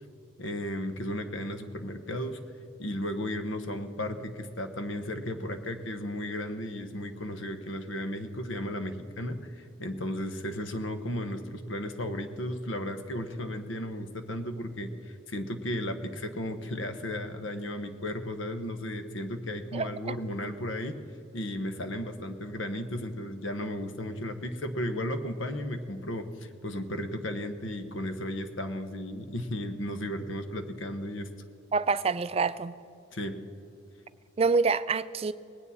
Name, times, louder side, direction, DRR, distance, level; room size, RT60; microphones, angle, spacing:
voice 1, 0.4-2.4 2.8-21.0 21.3-31.3 33.1-33.4, left 1 dB, 65° left, 8 dB, 0.9 m, -34 dB
voice 2, 19.7-20.1 31.7-32.7 34.4-35.3, right 4 dB, 30° right, 14 dB, 0.3 m, -27 dB
19.5 x 9.7 x 4.2 m, 2.7 s
head